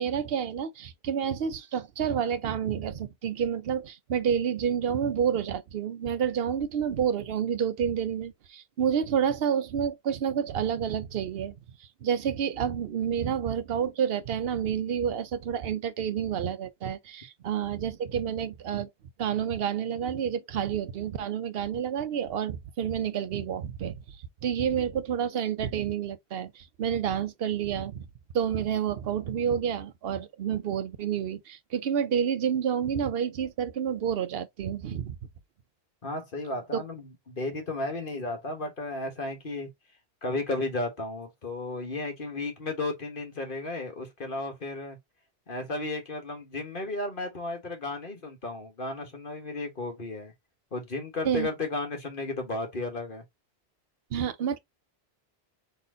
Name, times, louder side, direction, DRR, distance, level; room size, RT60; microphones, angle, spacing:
voice 1, 0.0-11.6 12.0-18.9 19.2-24.2 24.4-28.1 28.3-35.2 36.7-36.8 51.2-51.5 54.1-54.6, right 8 dB, 65° right, 0.9 m, -29 dB
voice 2, 36.0-39.7 40.2-45.0 45.5-50.3 50.7-53.2, left 2 dB, 50° left, 1.6 m, -34 dB
4.2 x 3.1 x 3.8 m
omnidirectional pair, 1.1 m